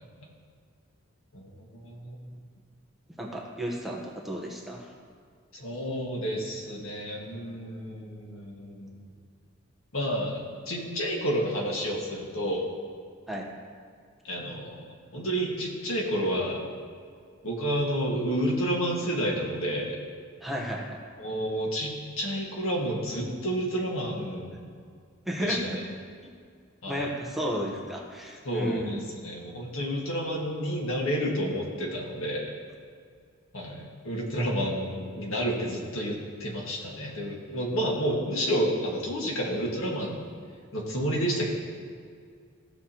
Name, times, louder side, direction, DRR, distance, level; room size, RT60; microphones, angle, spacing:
voice 1, 1.3-2.2 5.5-8.9 9.9-12.7 14.2-16.6 17.4-20.0 21.2-24.6 25.4-25.7 26.8-27.1 28.5-32.5 33.5-40.2 40.7-41.5, equal, 85° left, -2 dB, 1.7 m, -30 dB
voice 2, 3.2-4.9 13.3-13.5 20.4-21.0 25.3-25.8 26.9-29.0, equal, ahead, -2 dB, 0.9 m, -33 dB
15.5 x 6.2 x 2.9 m, 2.1 s
head